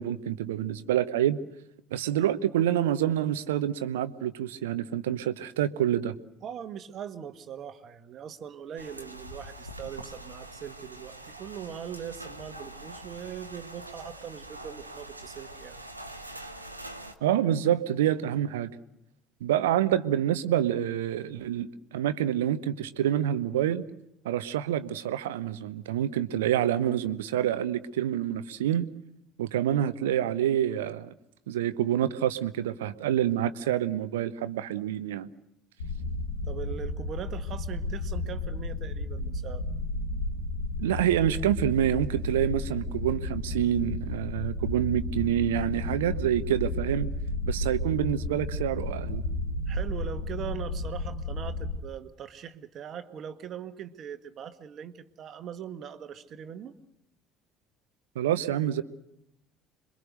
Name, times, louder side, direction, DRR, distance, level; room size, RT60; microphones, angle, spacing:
voice 1, 0.0-1.4 1.9-6.2 17.2-18.7 19.4-23.8 24.2-28.9 29.4-31.1 31.5-35.3 40.8-47.1 47.5-49.2 58.1-58.8, right 11 dB, 70° right, 14 dB, 0.9 m, -27 dB
voice 2, 6.4-15.8 36.4-39.7 49.7-56.8, right 8 dB, 45° right, 10 dB, 1.6 m, -41 dB
sound 1, 8.8-17.1, right 1 dB, 85° right, 1.2 m, -44 dB
sound 2, 35.8-51.8, left 2 dB, 75° left, 1.7 m, -32 dB
27.0 x 23.5 x 6.5 m, 0.82 s
figure-of-eight pair, 55°, 0 cm